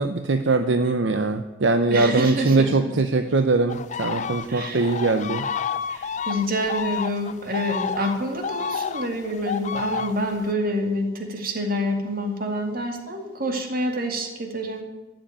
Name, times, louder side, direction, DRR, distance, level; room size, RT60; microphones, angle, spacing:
voice 1, 0.0-5.4, right 3 dB, 70° right, 8 dB, 0.7 m, -21 dB
voice 2, 1.9-2.7 4.5-4.9 5.9-14.8, equal, 50° right, 3 dB, 2.1 m, -27 dB
sound 1, 3.7-10.4, left 6 dB, 40° left, 0.5 m, -30 dB
13.0 x 7.8 x 9.0 m, 1.2 s
head